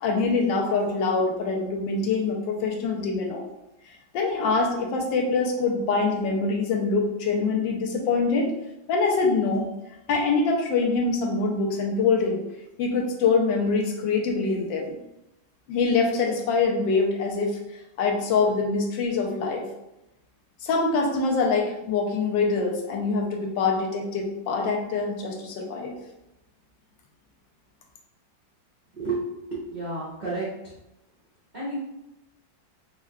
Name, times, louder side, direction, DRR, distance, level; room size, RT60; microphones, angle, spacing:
voice 1, 0.0-3.4 4.1-8.5 8.9-9.7 10.1-12.4 12.8-14.9 15.7-17.6 18.0-19.7 20.6-26.0, left 4 dB, 80° left, 1 dB, 1.3 m, -24 dB
voice 2, 28.9-30.8 31.5-31.8, right 2 dB, 85° right, -8 dB, 0.4 m, -31 dB
4.4 x 2.3 x 2.2 m, 0.91 s
omnidirectional pair, 2.0 m